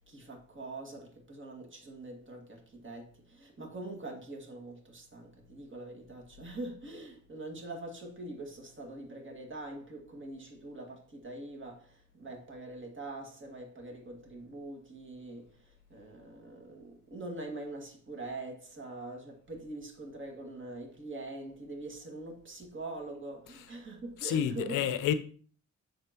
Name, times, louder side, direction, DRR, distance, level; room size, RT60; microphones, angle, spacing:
voice 1, 0.0-24.9, right 2 dB, 40° right, 2.1 m, -44 dB
voice 2, 24.2-25.1, left 9 dB, 85° left, 0.7 m, -30 dB
6.8 x 5.8 x 2.9 m
supercardioid pair, 55°, 32 cm